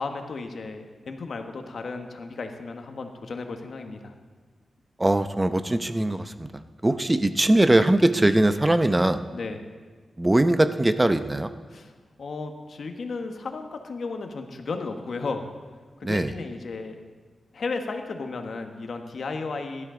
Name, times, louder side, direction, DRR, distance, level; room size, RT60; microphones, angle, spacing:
voice 1, 0.0-4.1 9.3-9.6 11.7-11.9 12.2-15.5 16.0-17.0 17.5-19.9, left 4 dB, 65° left, 5 dB, 1.3 m, -34 dB
voice 2, 5.0-6.5 6.8-9.2 10.2-11.5 16.0-16.3, right 1 dB, 15° right, 10 dB, 0.7 m, -21 dB
16.5 x 12.0 x 3.9 m, 1.4 s
wide cardioid pair, 95°, 0 cm